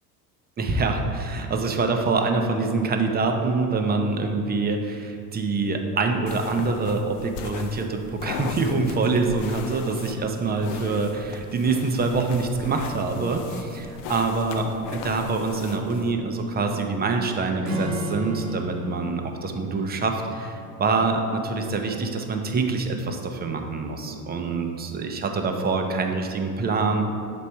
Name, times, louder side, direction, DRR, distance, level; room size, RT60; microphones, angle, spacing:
voice 1, 0.6-27.0, right 3 dB, 20° right, 4 dB, 0.6 m, -25 dB
sound 1, 6.3-16.1, left 6 dB, 45° left, 0.6 m, -39 dB
Acoustic guitar / Strum, 17.6-21.1, left 1 dB, 70° right, 1.3 m, -34 dB
6.9 x 4.1 x 4.4 m, 2.4 s
hypercardioid pair, 80°, 48 cm